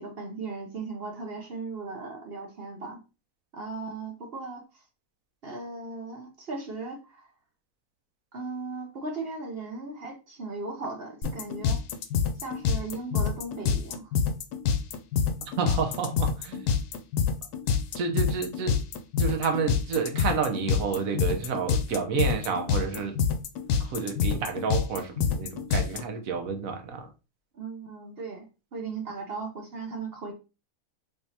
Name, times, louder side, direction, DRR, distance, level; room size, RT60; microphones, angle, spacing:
voice 1, 0.0-3.0 3.5-4.8 5.4-7.3 8.3-11.8 12.3-14.1 27.5-28.5 28.7-30.3, right 3 dB, 50° right, 0.8 m, -37 dB
sound 1, 11.2-26.0, left 6 dB, 80° left, 1.1 m, -26 dB
voice 2, 15.4-16.7 18.0-18.8 19.2-23.2 23.8-27.1, right 5 dB, 65° right, 1.1 m, -30 dB
3.6 x 3.4 x 2.7 m
omnidirectional pair, 1.6 m